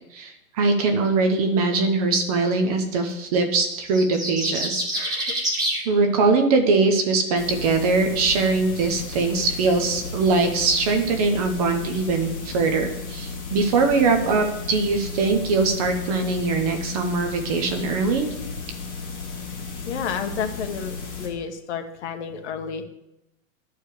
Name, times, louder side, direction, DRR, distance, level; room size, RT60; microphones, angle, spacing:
voice 1, 0.1-5.5 5.9-18.3, right 3 dB, 25° right, 5 dB, 0.8 m, -22 dB
sound 1, 3.7-5.8, right 1 dB, 10° right, 1.2 m, -26 dB
voice 2, 4.9-5.3 19.9-22.8, left 6 dB, 55° left, 6 dB, 1.2 m, -31 dB
sound 2, 7.4-21.3, left 4 dB, 20° left, 2.6 m, -34 dB
11.5 x 4.8 x 6.7 m, 0.88 s
supercardioid pair, 170°, 42 cm